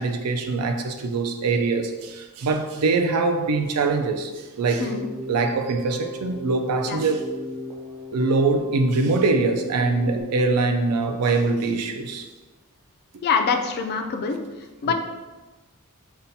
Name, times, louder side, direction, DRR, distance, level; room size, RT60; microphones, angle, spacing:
voice 1, 0.0-4.3 4.6-4.9 5.3-7.2 8.1-12.3 14.8-14.9, right 3 dB, 85° right, 5 dB, 0.4 m, -23 dB
Keyboard (musical), 4.8-10.2, left 2 dB, 30° right, 0.5 m, -36 dB
voice 2, 13.2-14.4 14.8-14.9, left 5 dB, 45° left, 5 dB, 0.3 m, -24 dB
5.4 x 2.2 x 2.7 m, 1.2 s
head